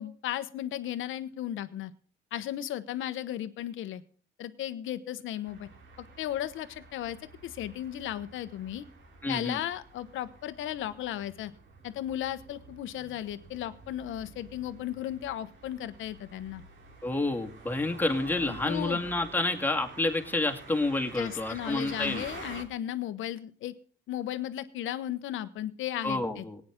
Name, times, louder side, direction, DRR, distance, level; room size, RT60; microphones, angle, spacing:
voice 1, 0.0-1.9 2.3-4.0 4.4-5.7 6.0-7.2 7.4-8.9 9.3-11.5 11.8-16.6 18.5-19.0 21.2-23.7 24.1-26.4, left 12 dB, 85° left, 12 dB, 1.1 m, -35 dB
sound 1, 5.4-22.6, right 4 dB, 70° right, 3.5 m, -49 dB
voice 2, 9.2-9.6 17.0-22.2 26.0-26.6, left 2 dB, 10° left, 2 dB, 2.4 m, -29 dB
18.0 x 9.5 x 3.7 m, 0.42 s
cardioid pair, 90°, 20 cm